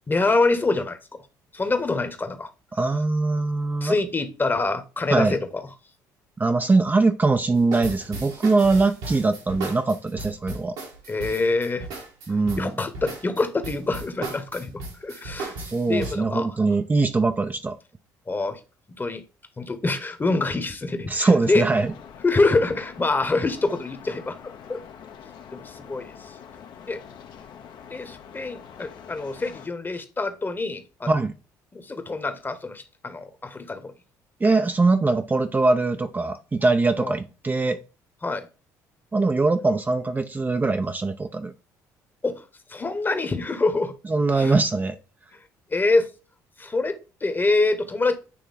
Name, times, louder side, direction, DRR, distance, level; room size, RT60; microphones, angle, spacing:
voice 1, 0.1-1.2 1.5-2.5 3.8-5.7 11.1-11.9 12.6-15.5 15.9-16.5 18.3-18.6 19.0-19.2 19.6-21.6 22.2-24.8 25.5-26.1 26.9-27.0 27.9-31.1 31.7-33.9 37.0-37.1 38.2-38.5 42.2-42.4 42.7-43.9 44.3-44.5 45.7-46.1 46.6-48.2, left 3 dB, 25° left, 1.1 m, -25 dB
voice 2, 2.7-4.0 5.1-5.4 6.4-10.8 12.3-12.7 15.6-17.8 21.1-21.9 31.1-31.3 34.4-37.8 39.1-41.5 44.1-45.0, right 3 dB, 20° right, 0.5 m, -22 dB
sound 1, 7.6-16.1, right 3 dB, 85° right, 2.3 m, -35 dB
sound 2, 21.4-29.7, left 7 dB, 60° left, 0.9 m, -44 dB
8.3 x 3.0 x 4.0 m
supercardioid pair, 65°, 8 cm